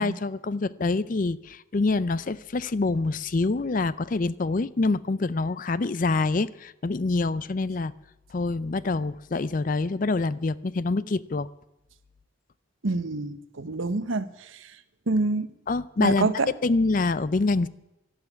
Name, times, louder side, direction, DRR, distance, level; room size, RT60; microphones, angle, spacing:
voice 1, 0.0-7.9 8.3-11.5 15.7-17.7, left 3 dB, 40° left, 0.5 m, -26 dB
voice 2, 12.8-14.3 15.1-15.5 16.0-16.5, right 3 dB, 75° right, 1.0 m, -26 dB
12.5 x 12.0 x 9.5 m
head